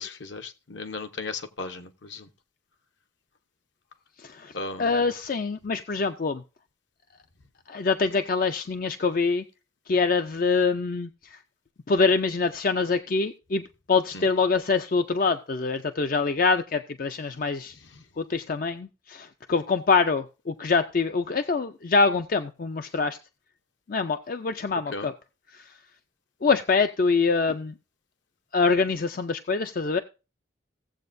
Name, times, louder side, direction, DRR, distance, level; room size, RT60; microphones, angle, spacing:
voice 1, 0.0-2.3 4.5-5.0 14.1-14.3 24.9-25.1, left 3 dB, 65° left, 1.0 m, -36 dB
voice 2, 4.2-4.5 4.8-6.4 7.7-9.4 9.9-11.4 11.9-13.6 13.9-17.7 18.2-23.2 23.9-25.1 25.5-25.6 26.4-27.7 28.5-30.0, left 4 dB, 45° left, 0.4 m, -25 dB
16.5 x 7.6 x 2.6 m
head